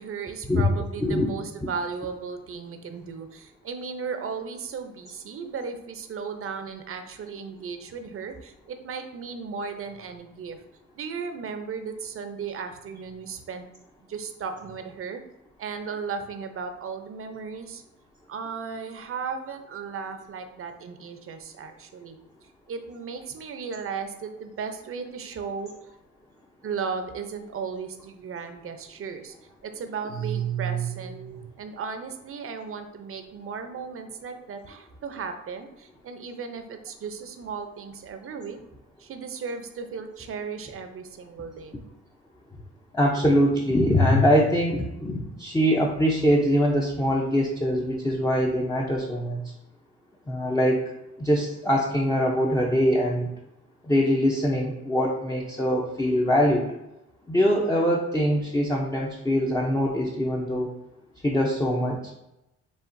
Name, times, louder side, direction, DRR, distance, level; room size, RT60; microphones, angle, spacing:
voice 1, 0.0-10.6 11.0-13.6 14.1-15.2 15.6-17.8 18.3-22.2 22.7-25.7 26.6-29.3 29.6-38.6 39.0-41.8, right 6 dB, 45° right, 7 dB, 0.6 m, -35 dB
voice 2, 42.9-49.5 50.3-50.9 51.2-53.3 53.9-56.7 57.3-60.7 61.2-62.2, equal, 10° left, -2 dB, 0.6 m, -23 dB
7.0 x 2.4 x 2.6 m, 0.91 s
cardioid pair, 90°, 30 cm